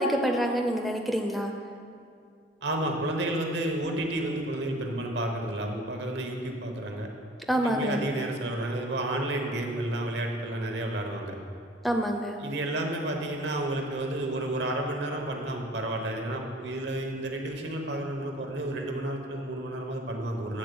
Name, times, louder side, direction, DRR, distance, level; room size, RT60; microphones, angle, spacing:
voice 1, 0.0-1.5 7.5-8.0 11.8-12.4, equal, ahead, 3 dB, 0.4 m, -27 dB
voice 2, 2.6-7.1 7.6-11.4 12.4-20.6, right 1 dB, 75° right, 3 dB, 1.0 m, -31 dB
8.6 x 3.9 x 6.8 m, 2.3 s
head